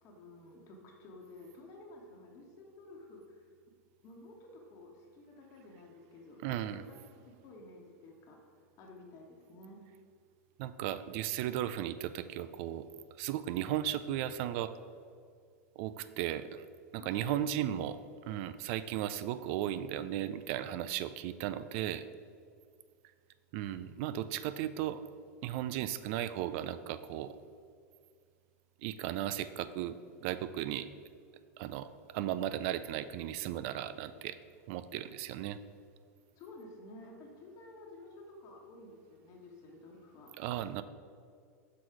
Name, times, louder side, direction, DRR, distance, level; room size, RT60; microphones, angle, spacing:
voice 1, 0.0-3.5 4.0-6.4 6.7-9.8 17.0-17.8 36.4-40.3, left 2 dB, 45° left, -1 dB, 1.3 m, -52 dB
voice 2, 6.4-6.8 10.6-12.8 13.2-14.7 15.8-16.6 17.1-18.0 18.3-22.0 23.5-25.0 25.4-27.4 28.8-29.9 30.2-30.9 31.6-31.9 32.1-34.4 34.7-35.6 40.4-40.8, right 12 dB, 55° right, 13 dB, 0.4 m, -35 dB
6.1 x 4.6 x 4.8 m, 2.2 s
hypercardioid pair, 100°, 8 cm